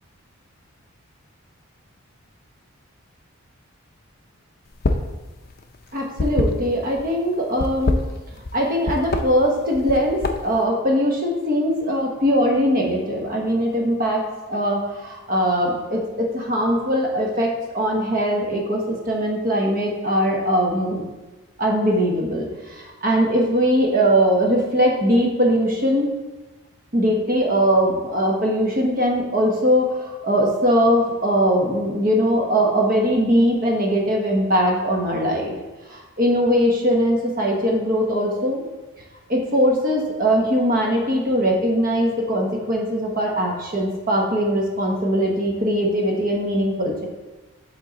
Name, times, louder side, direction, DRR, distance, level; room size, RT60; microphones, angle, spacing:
sound 1, 4.7-5.1 5.4-7.0 7.5-8.6 8.8-9.2 9.7-10.6, left 2 dB, 45° left, 0.4 m, -23 dB
voice 1, 5.9-8.0 8.5-14.2 14.5-21.0 21.6-26.1 26.9-35.5 35.9-38.6 39.3-47.1, equal, 40° right, -1 dB, 1.1 m, -21 dB
7.7 x 3.7 x 4.0 m, 1.1 s
head